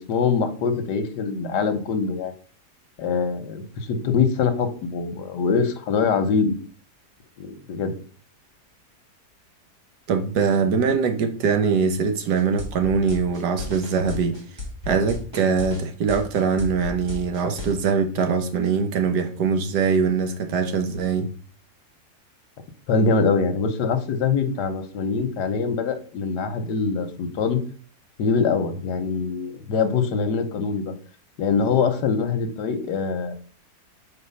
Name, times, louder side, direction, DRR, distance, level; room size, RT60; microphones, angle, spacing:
voice 1, 0.0-2.3 3.0-6.6 7.4-7.9 22.9-27.6 28.2-30.9 31.4-33.3, left 5 dB, 80° left, 1.5 m, -23 dB
voice 2, 10.1-14.4 14.8-21.3, right 5 dB, 80° right, 1.5 m, -22 dB
sound 1, 12.4-17.7, left 2 dB, 15° right, 1.6 m, -34 dB
4.9 x 4.3 x 5.5 m
omnidirectional pair, 1.8 m